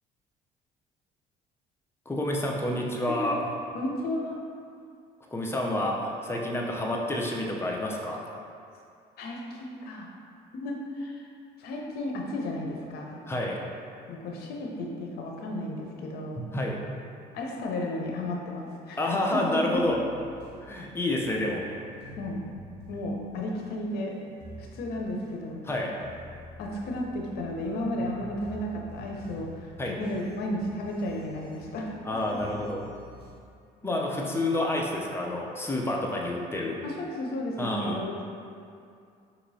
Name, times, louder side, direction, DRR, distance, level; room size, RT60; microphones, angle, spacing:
voice 1, 2.1-3.4 5.3-8.3 13.3-13.6 16.4-16.8 19.0-20.0 20.6-21.9 25.6-25.9 29.8-29.9 32.0-32.8 33.8-36.8 37.6-38.0, left 1 dB, 15° left, -1 dB, 0.5 m, -29 dB
voice 2, 3.1-3.4 3.7-4.4 9.2-10.1 10.5-11.3 11.6-13.2 14.1-16.4 17.3-19.8 22.2-22.4 22.9-24.2 24.6-25.6 26.6-31.9 33.8-34.1 36.8-38.2, left 1 dB, 70° left, -1 dB, 0.7 m, -33 dB
sound 1, 19.7-33.3, right 1 dB, 75° right, 1.2 m, -48 dB
5.1 x 2.9 x 2.7 m, 2.4 s
cardioid pair, 110°, 17 cm